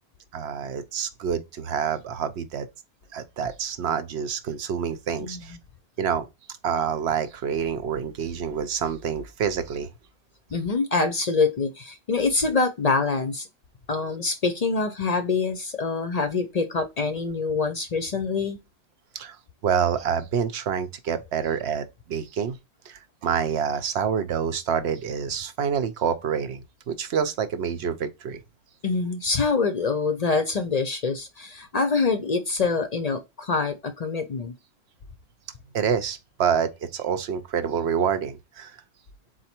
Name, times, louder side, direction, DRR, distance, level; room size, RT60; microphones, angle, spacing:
voice 1, 0.3-2.7 3.1-5.6 6.0-6.2 6.6-9.9 19.1-19.4 19.6-22.6 22.9-28.4 35.7-38.8, right 7 dB, 80° right, 1.0 m, -27 dB
voice 2, 10.5-13.5 13.9-18.6 28.8-34.6, left 4 dB, 45° left, 0.6 m, -25 dB
4.1 x 2.5 x 4.3 m
omnidirectional pair, 1.1 m